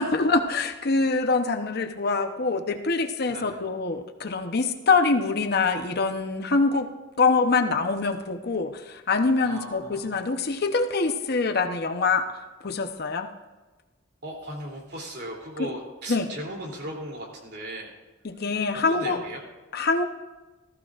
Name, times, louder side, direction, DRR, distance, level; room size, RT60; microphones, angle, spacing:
voice 1, 0.0-6.9 7.2-12.2 12.6-13.3 15.6-15.7 16.1-16.3 18.2-19.2 19.7-20.0, left 4 dB, 55° left, 6 dB, 0.8 m, -24 dB
voice 2, 3.3-3.6 9.4-10.2 14.2-17.9 18.7-19.4, right 1 dB, 55° right, -1 dB, 3.0 m, -37 dB
19.0 x 14.5 x 2.5 m, 1.2 s
head